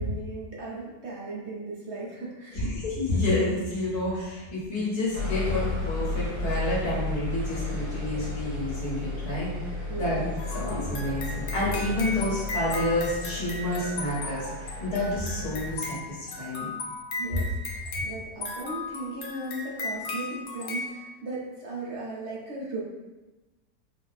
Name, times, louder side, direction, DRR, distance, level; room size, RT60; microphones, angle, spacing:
voice 1, 0.0-2.7 3.1-3.3 4.1-4.3 9.4-9.6 9.9-10.2 17.2-22.8, right 2 dB, 50° right, -4 dB, 1.0 m, -37 dB
voice 2, 2.5-9.5 10.0-10.2 10.5-16.7, left 1 dB, 90° left, -7 dB, 2.1 m, -29 dB
sound 1, 5.1-15.8, left 3 dB, 75° right, 1.8 m, -33 dB
sound 2, 10.4-20.9, left 3 dB, 70° left, 1.2 m, -36 dB
5.1 x 2.2 x 4.1 m, 1.1 s
omnidirectional pair, 1.6 m